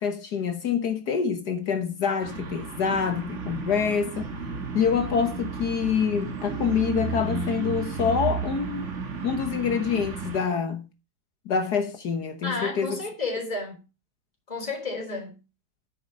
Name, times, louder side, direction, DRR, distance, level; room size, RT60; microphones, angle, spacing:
voice 1, 0.0-4.3 4.7-8.9 9.2-10.9 11.4-13.0, left 6 dB, 60° left, 1.7 m, -26 dB
sound 1, 2.2-10.4, right 4 dB, 40° right, 1.6 m, -33 dB
voice 2, 12.4-13.8 14.5-15.4, left 3 dB, 20° left, 3.6 m, -31 dB
10.0 x 8.0 x 5.2 m
omnidirectional pair, 2.1 m